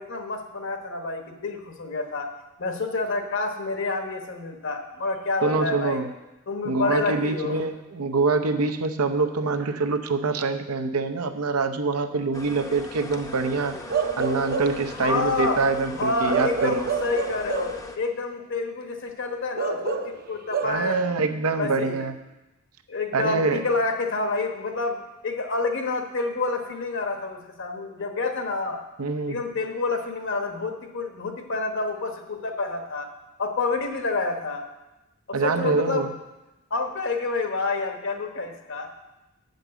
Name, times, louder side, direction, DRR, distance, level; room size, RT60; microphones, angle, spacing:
voice 1, 0.0-2.3 2.6-6.0 6.5-7.6 14.9-15.6 16.0-21.0 21.6-22.1 22.9-28.8 29.3-33.1 33.4-34.6 35.3-36.1 36.7-38.9, left 3 dB, 60° left, 5 dB, 1.1 m, -28 dB
voice 2, 5.4-6.1 6.6-13.8 14.2-16.9 20.6-22.2 23.1-23.6 29.0-29.4 35.3-36.1, right 3 dB, 90° right, 8 dB, 0.7 m, -25 dB
sound 1, 12.3-18.0, left 2 dB, 15° left, 0.6 m, -40 dB
Bark / Livestock farm animals working animals, 13.9-14.9 16.3-17.8 19.6-20.7, right 5 dB, 45° right, 0.6 m, -28 dB
8.0 x 5.3 x 7.4 m, 1.0 s
head